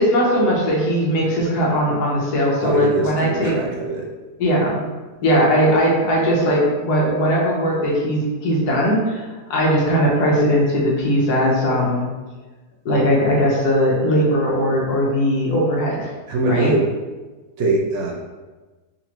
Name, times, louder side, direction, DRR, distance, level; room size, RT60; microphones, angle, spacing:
voice 1, 0.0-3.5 4.4-4.8 5.2-12.1 12.8-16.1 16.5-16.7, equal, 70° left, -3 dB, 1.3 m, -19 dB
voice 2, 2.6-4.1 16.3-16.8 17.6-18.1, right 2 dB, 70° right, -2 dB, 0.6 m, -22 dB
4.0 x 2.6 x 2.8 m, 1.3 s
omnidirectional pair, 1.9 m